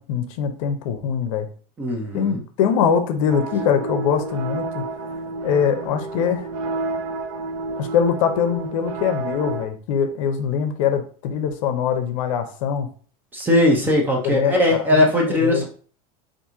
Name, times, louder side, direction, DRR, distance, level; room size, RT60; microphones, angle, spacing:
voice 1, 0.0-1.5 2.1-4.9 5.4-6.5 7.8-12.9 14.2-15.6, left 7 dB, 65° left, 7 dB, 0.6 m, -23 dB
voice 2, 1.8-2.4 13.3-15.6, left 1 dB, 10° right, 0 dB, 0.5 m, -19 dB
sound 1, 3.3-9.7, right 3 dB, 65° right, 0.6 m, -30 dB
2.9 x 2.5 x 3.5 m, 0.43 s
supercardioid pair, 165°, 18 cm